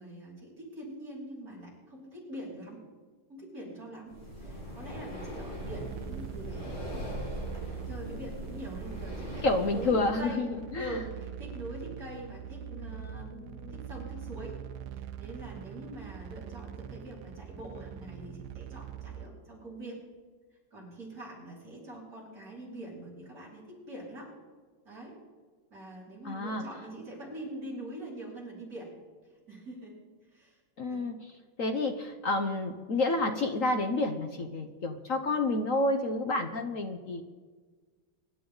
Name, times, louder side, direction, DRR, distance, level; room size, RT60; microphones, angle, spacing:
voice 1, 0.0-2.8 3.3-9.5 9.7-10.5 10.7-14.6 14.9-20.0 20.7-24.3 24.8-25.2 25.7-28.9 29.5-30.0 30.3-30.6 30.9-31.1, right 1 dB, 40° right, -5 dB, 5.7 m, -44 dB
Breathing, 4.1-10.2, equal, 35° left, 6.8 m, -40 dB
sound 1, 5.6-19.3, right 9 dB, 90° right, 1.6 m, -43 dB
voice 2, 9.4-10.5 10.7-10.9 12.8-13.1 13.3-13.7 26.2-26.6 30.8-31.2 31.6-37.2, left 2 dB, 50° left, 6 dB, 1.0 m, -29 dB
25.0 x 12.0 x 4.0 m, 1.4 s
omnidirectional pair, 2.3 m